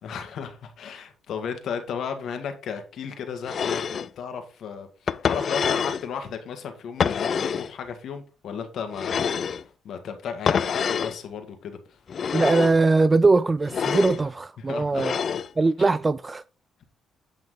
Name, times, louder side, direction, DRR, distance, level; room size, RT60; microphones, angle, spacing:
voice 1, 0.0-11.8 14.6-15.1 15.8-15.9, left 6 dB, 70° left, 1.8 m, -34 dB
sound 1, 3.4-4.1 5.1-6.0 7.0-7.7 8.9-9.6 10.5-11.2 12.1-12.8 13.6-14.2 14.9-15.5, left 7 dB, 50° left, 0.4 m, -26 dB
voice 2, 12.3-15.2 15.6-16.4, right 3 dB, 25° right, 0.4 m, -21 dB
9.0 x 5.9 x 3.8 m
cardioid pair, 90°, 0 cm